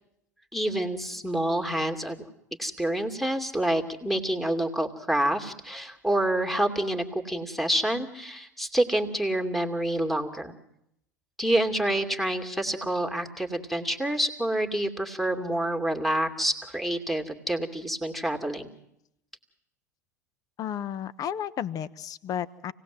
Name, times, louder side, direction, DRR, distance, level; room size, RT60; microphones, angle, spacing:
voice 1, 0.5-2.2 2.6-10.5 11.4-18.7, right 1 dB, ahead, 4 dB, 2.6 m, -27 dB
voice 2, 20.6-22.7, left 9 dB, 40° left, 18 dB, 1.1 m, -33 dB
27.5 x 18.5 x 7.8 m, 0.80 s
figure-of-eight pair, 80°, 9 cm